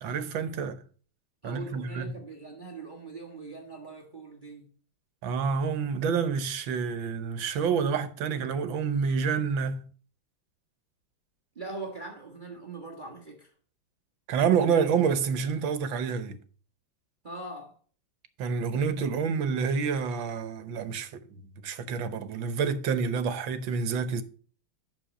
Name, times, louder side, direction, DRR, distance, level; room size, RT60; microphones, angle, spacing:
voice 1, 0.0-0.8 1.4-2.1 5.2-9.8 14.3-16.4 18.4-24.2, right 6 dB, 75° right, 1.6 m, -28 dB
voice 2, 1.4-4.7 11.5-13.5 17.2-17.7, right 3 dB, 25° right, 1.4 m, -41 dB
9.6 x 6.4 x 5.0 m
omnidirectional pair, 2.2 m